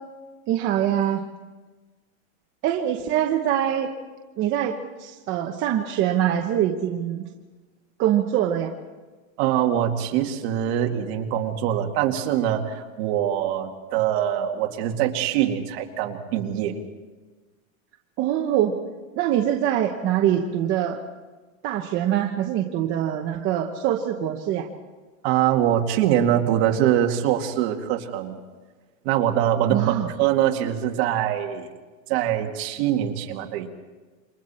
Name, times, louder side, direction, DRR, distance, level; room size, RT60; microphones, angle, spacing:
voice 1, 0.5-1.2 2.6-3.9 4.4-7.3 8.0-8.7 18.2-18.7 19.2-21.0 21.6-24.7 29.7-30.1, right 11 dB, 30° right, 2 dB, 1.0 m, -24 dB
voice 2, 9.4-16.8 25.2-28.4 29.0-31.7 32.1-33.7, right 11 dB, 50° right, 3 dB, 2.2 m, -23 dB
28.0 x 25.0 x 4.4 m, 1.3 s
supercardioid pair, 165°, 40 cm